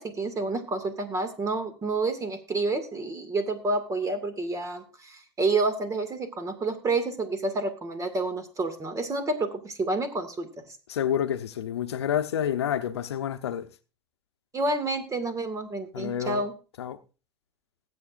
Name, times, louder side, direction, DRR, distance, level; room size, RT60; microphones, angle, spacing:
voice 1, 0.0-10.5 14.5-16.5, right 3 dB, 25° right, 2.1 m, -29 dB
voice 2, 10.9-13.7 15.9-16.5 16.8-17.0, left 9 dB, 85° left, 0.8 m, -29 dB
20.0 x 7.9 x 2.5 m
hypercardioid pair, 95°, 13 cm